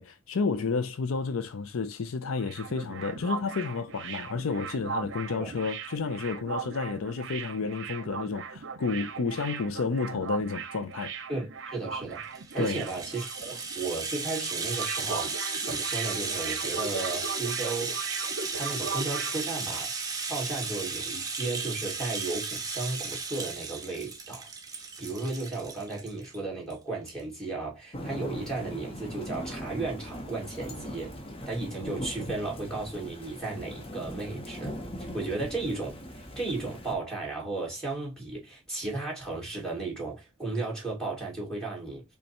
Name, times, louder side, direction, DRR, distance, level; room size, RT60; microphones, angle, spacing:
voice 1, 0.0-11.1 12.6-12.8, left 4 dB, 70° left, 0.5 m, -31 dB
sound 1, 2.2-13.7 14.0-14.2 14.5-19.4, right 5 dB, 60° right, 0.7 m, -38 dB
voice 2, 11.3-12.2 12.5-18.1 18.5-19.9 20.3-31.1 31.5-34.7 35.0-42.0, right 3 dB, 5° left, 2.3 m, -35 dB
Rattle (instrument), 12.2-26.4 26.7-26.8 27.1-27.2, right 4 dB, 20° right, 0.9 m, -35 dB
Thunder / Rain, 27.9-37.0, equal, 30° left, 1.0 m, -40 dB
5.3 x 2.3 x 4.2 m
head